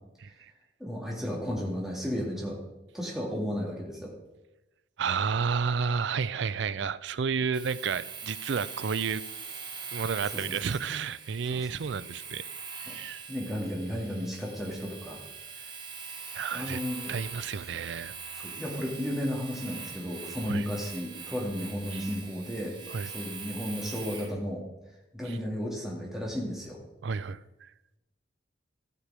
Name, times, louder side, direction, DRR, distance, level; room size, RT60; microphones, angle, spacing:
voice 1, 0.8-2.6 2.9-4.1 10.3-10.4 11.5-11.6 12.9-13.0 13.3-15.2 16.5-17.1 18.3-22.7 23.0-24.6 25.1-26.8, equal, ahead, 2.0 m, -33 dB
voice 2, 5.0-9.2 9.9-12.4 12.7-13.3 16.3-16.8 17.1-18.2 20.4-20.7 21.9-22.0 22.9-23.1 25.2-25.4 27.0-27.7, right 6 dB, 70° right, 0.4 m, -31 dB
Domestic sounds home sounds, 7.5-24.3, right 5 dB, 25° right, 1.3 m, -42 dB
13.5 x 6.8 x 4.8 m
head